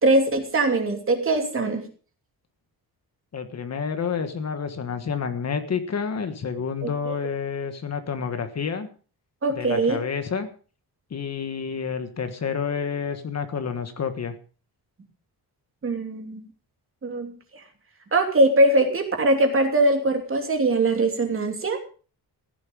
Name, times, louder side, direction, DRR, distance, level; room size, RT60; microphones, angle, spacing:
voice 1, 0.0-1.9 6.8-7.1 9.4-10.0 15.8-16.5 17.0-17.3 18.1-21.8, right 2 dB, 30° right, 4 dB, 2.8 m, -21 dB
voice 2, 3.3-8.9 9.5-10.5 11.1-14.3, left 6 dB, 40° left, 8 dB, 1.5 m, -29 dB
15.5 x 11.0 x 5.3 m, 0.39 s
wide cardioid pair, 155°, 39 cm